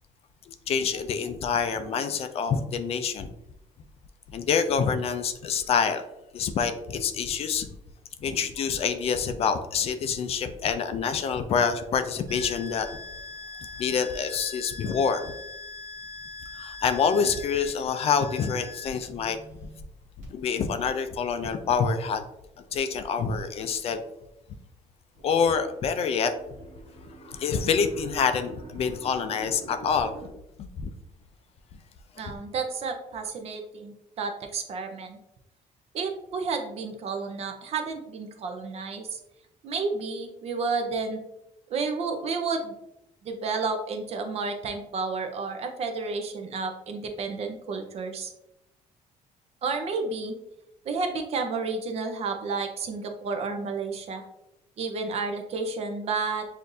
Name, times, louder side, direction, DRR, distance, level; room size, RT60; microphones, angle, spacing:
voice 1, 0.5-3.3 4.3-6.0 6.3-7.7 8.2-12.9 13.8-15.2 16.5-19.4 20.3-22.2 22.7-24.0 25.2-26.3 27.2-30.1 30.8-30.9, left 6 dB, 45° left, 9 dB, 0.4 m, -26 dB
sound 1, 12.3-19.8 20.2-20.3, left 3 dB, 70° right, 1.4 m, -42 dB
sound 2, 25.1-30.3, right 3 dB, 90° right, 1.2 m, -47 dB
voice 2, 32.2-35.2 35.9-39.2 39.6-41.2 41.7-42.7 43.2-48.3 49.6-50.3 50.8-54.2 54.8-56.5, right 4 dB, 50° right, 5 dB, 0.7 m, -31 dB
6.4 x 2.6 x 2.7 m, 0.86 s
cardioid pair, 145°, 14 cm